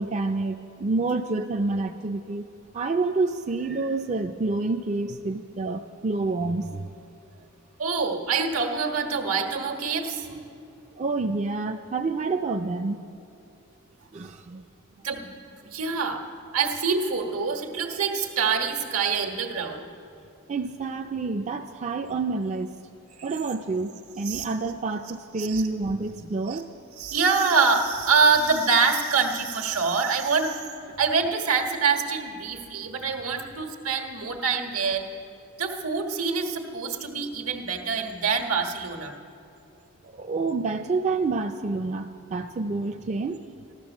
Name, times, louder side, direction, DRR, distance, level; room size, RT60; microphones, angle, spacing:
voice 1, 0.0-2.5 2.7-6.9 11.0-13.0 14.1-14.6 20.5-22.7 23.2-26.7 40.1-43.4, right 3 dB, 30° right, 5 dB, 0.4 m, -28 dB
voice 2, 7.8-10.5 15.0-15.3 15.6-16.2 16.5-19.8 23.2-23.3 24.2-24.5 25.4-25.6 26.5-26.6 27.0-30.6 31.0-35.0 35.6-39.1, right 5 dB, 80° right, 3 dB, 1.4 m, -25 dB
14.5 x 12.0 x 7.1 m, 2.6 s
head